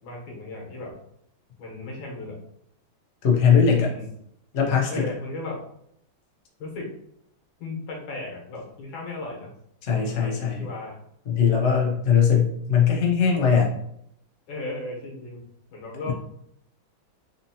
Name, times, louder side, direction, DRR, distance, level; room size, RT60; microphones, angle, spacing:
voice 1, 0.0-0.9 1.6-2.4 3.7-4.1 4.9-5.6 6.6-6.9 7.6-9.5 9.9-11.0 14.5-15.4 15.7-16.1, left 2 dB, 65° left, -2 dB, 1.8 m, -36 dB
voice 2, 3.2-3.9 4.5-5.0 9.8-10.7 11.3-13.7 16.1-16.2, left 7 dB, 85° left, -1 dB, 0.6 m, -20 dB
4.2 x 2.7 x 2.7 m, 0.72 s
omnidirectional pair, 2.4 m